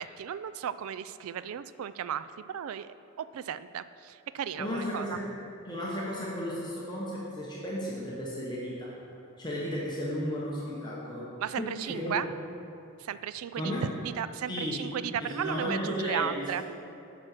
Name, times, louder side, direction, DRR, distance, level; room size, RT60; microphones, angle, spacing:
voice 1, 0.0-5.2 11.4-12.3 13.0-13.8 14.0-16.6, right 9 dB, 80° right, 14 dB, 0.3 m, -35 dB
voice 2, 4.6-5.3 5.7-9.0 9.4-12.1 13.5-13.9 14.5-14.8 15.2-16.6, equal, 20° left, -5 dB, 1.0 m, -34 dB
7.6 x 5.9 x 6.5 m, 2.6 s
head